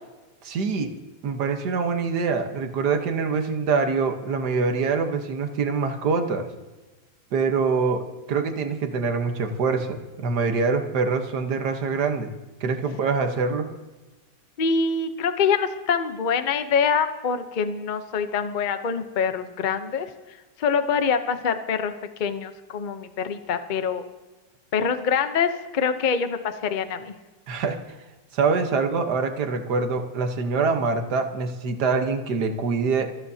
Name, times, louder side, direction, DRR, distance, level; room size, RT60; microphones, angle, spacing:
voice 1, 0.4-0.9 1.2-6.5 7.3-8.0 8.3-12.3 12.6-13.7 27.5-27.8 28.3-33.2, right 4 dB, 60° right, 6 dB, 1.7 m, -24 dB
voice 2, 14.6-20.1 20.6-21.9 22.2-24.0 24.7-27.2, left 6 dB, 55° left, 9 dB, 0.5 m, -25 dB
26.0 x 14.0 x 2.8 m, 1.2 s
omnidirectional pair, 2.1 m